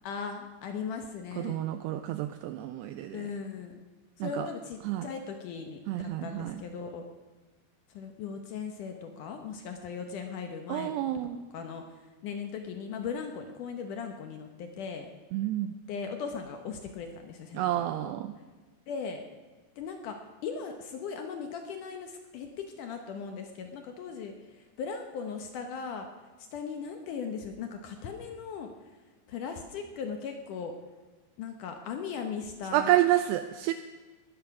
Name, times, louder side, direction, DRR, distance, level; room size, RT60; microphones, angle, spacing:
voice 1, 0.0-1.7 3.1-3.8 4.2-7.0 7.9-10.9 11.5-11.8 12.2-15.1 15.9-18.1 18.9-19.2 19.8-26.1 26.5-28.7 29.3-30.7 31.4-32.9, left 6 dB, 70° left, 5 dB, 2.0 m, -38 dB
voice 2, 1.4-3.3 4.2-4.5 4.8-5.1 5.9-6.6 10.7-11.4 15.3-15.7 17.5-18.3 32.7-33.7, right 13 dB, 80° right, 9 dB, 2.5 m, -29 dB
19.5 x 12.0 x 6.0 m, 1.3 s
omnidirectional pair, 5.0 m